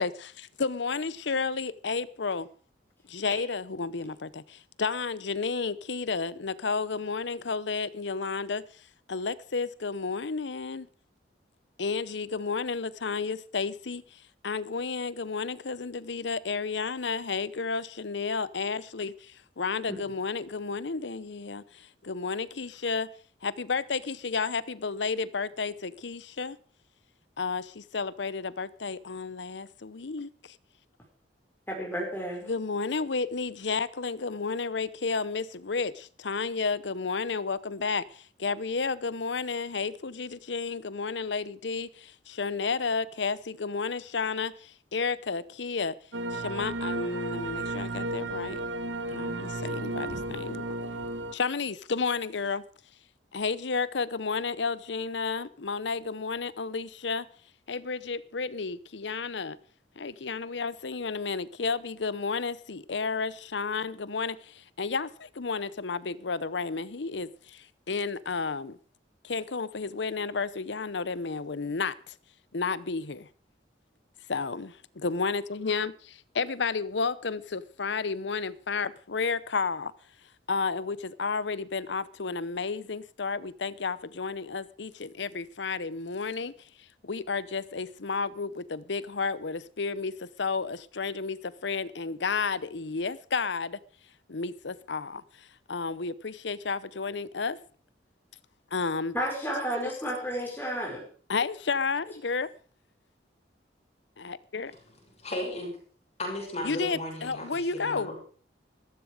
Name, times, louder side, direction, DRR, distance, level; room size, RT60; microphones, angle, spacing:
voice 1, 0.0-2.5 3.1-10.9 11.8-23.1 23.4-26.6 27.4-30.6 32.5-45.9 46.3-48.6 49.1-51.0 51.3-52.6 53.3-57.3 57.7-59.6 60.0-68.8 69.2-72.1 72.5-73.3 74.3-79.9 80.5-93.8 94.3-97.6 98.7-99.1 99.8-99.9 101.3-102.5 104.2-104.7 106.6-108.2, left 4 dB, 70° left, 0.8 m, -32 dB
voice 2, 31.7-32.4 99.1-101.0, equal, 10° left, 5.2 m, -31 dB
sound 1, 46.1-51.3, right 2 dB, 90° right, 1.2 m, -33 dB
voice 3, 105.2-105.8 106.2-108.2, left 1 dB, 40° left, 6.6 m, -35 dB
14.5 x 14.0 x 4.9 m
head